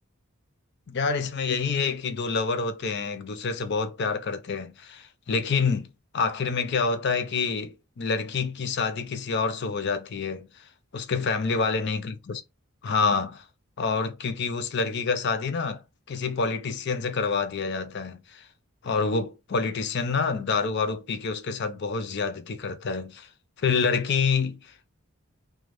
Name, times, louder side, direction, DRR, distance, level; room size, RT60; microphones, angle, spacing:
voice 1, 0.9-5.9 6.1-10.6 10.9-12.4 12.8-13.4 13.8-15.8 16.1-18.5 18.8-23.3 23.6-24.9, left 5 dB, 50° left, 0.4 m, -27 dB
3.2 x 2.3 x 2.5 m
head